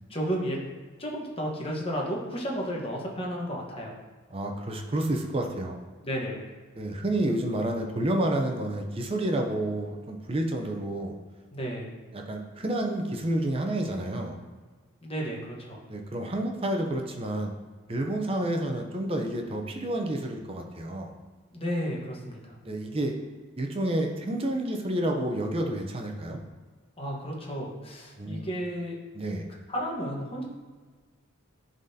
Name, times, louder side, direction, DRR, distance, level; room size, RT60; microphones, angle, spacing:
voice 1, 0.1-0.6 1.0-3.9 6.0-6.5 11.5-11.9 15.0-15.8 21.5-22.6 27.0-29.0 29.7-30.4, equal, 25° left, -2 dB, 1.1 m, -32 dB
voice 2, 4.3-5.8 6.8-11.1 12.1-14.4 15.9-17.5 17.9-21.1 22.6-23.1 23.6-26.4 28.2-28.6 29.1-29.5, right 1 dB, 25° right, 2 dB, 0.6 m, -29 dB
10.5 x 3.8 x 2.7 m, 1.4 s
head